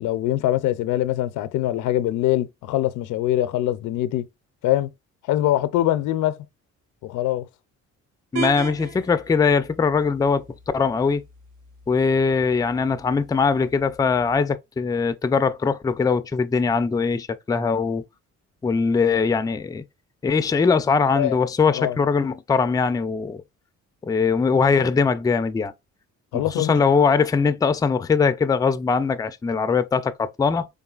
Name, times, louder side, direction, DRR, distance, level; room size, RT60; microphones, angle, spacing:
voice 1, 0.0-4.3 4.6-4.9 5.3-6.4 7.0-7.5 21.2-21.4 21.7-22.0 26.3-26.7, left 13 dB, 85° left, 0.5 m, -23 dB
voice 2, 8.3-10.4 10.7-11.2 11.9-18.0 18.6-19.8 20.2-23.4 24.1-25.7 26.3-30.7, left 5 dB, 15° left, 0.3 m, -21 dB
sound 1, 8.4-14.4, right 5 dB, 80° right, 1.4 m, -39 dB
3.9 x 3.6 x 2.3 m
cardioid pair, 90°, 30 cm